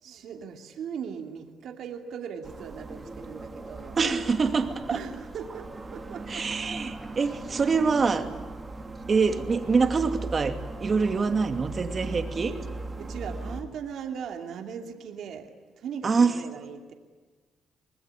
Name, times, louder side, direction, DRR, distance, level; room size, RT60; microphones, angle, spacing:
voice 1, 0.0-4.0 4.9-6.5 8.2-8.4 13.0-16.9, right 7 dB, 70° right, 4 dB, 2.7 m, -39 dB
sound 1, 2.4-13.6, right 2 dB, 20° right, 2.9 m, -39 dB
voice 2, 4.0-5.0 6.3-8.3 9.1-10.5 10.8-12.5 16.0-16.3, right 5 dB, 40° right, 6 dB, 2.5 m, -25 dB
25.5 x 20.0 x 9.8 m, 1.4 s
cardioid pair, 90°, 0 cm